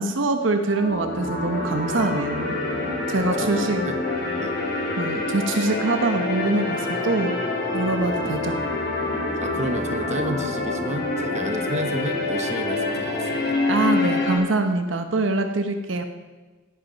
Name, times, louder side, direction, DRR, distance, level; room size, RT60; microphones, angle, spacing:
voice 1, 0.0-2.6 3.1-3.8 5.0-7.4 7.7-8.6 13.7-16.0, right 2 dB, 70° right, 6 dB, 0.9 m, -24 dB
sound 1, 0.7-14.4, left 2 dB, 55° left, 3.1 m, -26 dB
voice 2, 3.1-4.0 4.4-4.6 9.4-13.4, right 1 dB, 35° right, 6 dB, 1.0 m, -31 dB
17.5 x 8.6 x 5.2 m, 1.3 s
head